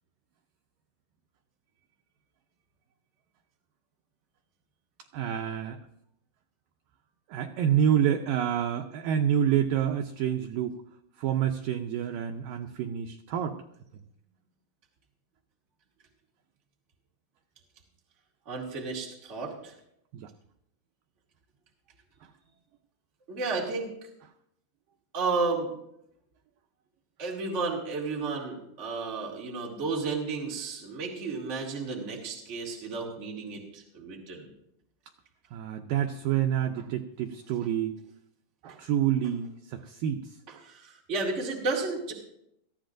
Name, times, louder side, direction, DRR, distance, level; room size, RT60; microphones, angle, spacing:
voice 1, 5.1-5.8 7.3-10.8 11.2-13.6 20.1-20.3 35.5-38.0 38.6-40.4, right 9 dB, 90° right, 4 dB, 1.9 m, -28 dB
voice 2, 18.5-19.7 23.3-23.9 25.1-25.7 27.2-34.5 38.7-38.8 40.6-42.1, right 3 dB, 25° right, -3 dB, 1.9 m, -32 dB
20.5 x 14.0 x 2.6 m, 0.77 s
omnidirectional pair, 4.7 m